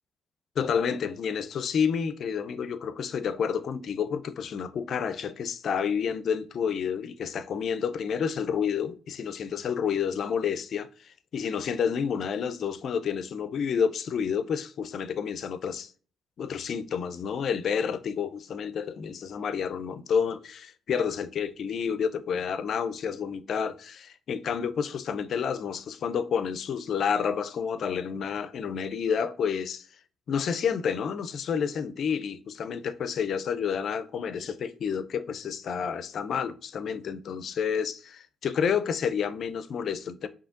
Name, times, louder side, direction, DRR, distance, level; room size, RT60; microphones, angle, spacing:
voice 1, 0.6-15.9 16.4-29.9 30.3-40.3, left 7 dB, 65° left, 0.4 m, -29 dB
5.0 x 2.7 x 2.5 m
supercardioid pair, 55°, 0 cm